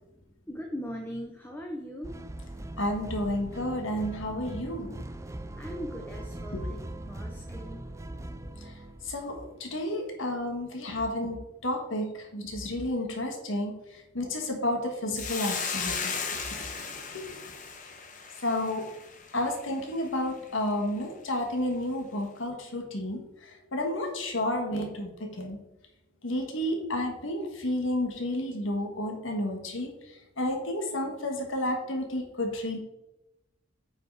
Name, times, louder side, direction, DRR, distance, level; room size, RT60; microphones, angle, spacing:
voice 1, 0.5-2.1 5.6-6.8 7.1-7.9, equal, 10° left, 1 dB, 0.8 m, -39 dB
sound 1, 2.0-9.4, right 1 dB, 15° right, 0.4 m, -40 dB
voice 2, 2.8-4.9 9.0-11.4 11.6-16.1 17.1-17.2 18.4-18.9 19.3-25.6 26.2-29.9 30.4-32.8, left 1 dB, 70° left, 3 dB, 1.7 m, -31 dB
Hiss, 15.2-19.7, left 5 dB, 40° left, 1.1 m, -35 dB
9.4 x 5.0 x 4.8 m, 0.91 s
head